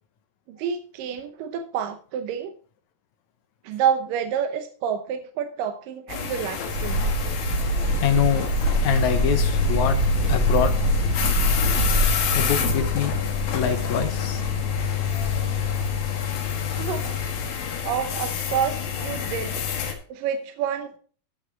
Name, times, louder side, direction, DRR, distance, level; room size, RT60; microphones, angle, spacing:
voice 1, 0.5-2.5 3.6-7.1 16.7-17.2 17.8-21.0, right 8 dB, 75° right, 7 dB, 2.5 m, -29 dB
sound 1, 6.1-19.9, left 9 dB, 85° left, 3.5 m, -28 dB
sound 2, 6.6-16.0, right 1 dB, 50° right, 3.1 m, -25 dB
voice 2, 8.0-8.5 8.8-10.0 10.3-10.7 12.3-13.1 13.5-14.4, left 8 dB, 70° left, 8 dB, 2.0 m, -24 dB
15.0 x 5.9 x 3.9 m, 0.42 s
omnidirectional pair, 4.0 m